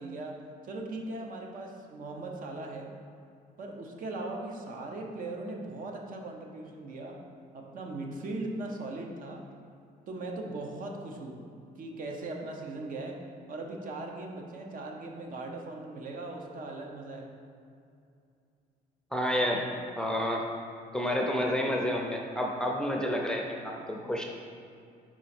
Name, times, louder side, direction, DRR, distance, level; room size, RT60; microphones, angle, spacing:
voice 1, 0.0-2.9 3.6-7.3 7.5-9.5 10.1-11.4 11.7-13.2 13.5-17.3, right 2 dB, 55° right, 2 dB, 0.8 m, -39 dB
voice 2, 19.1-19.7 20.0-20.4 20.9-24.2, equal, 5° left, 0 dB, 0.6 m, -29 dB
4.9 x 4.5 x 4.3 m, 2.5 s
cardioid pair, 110°, 17 cm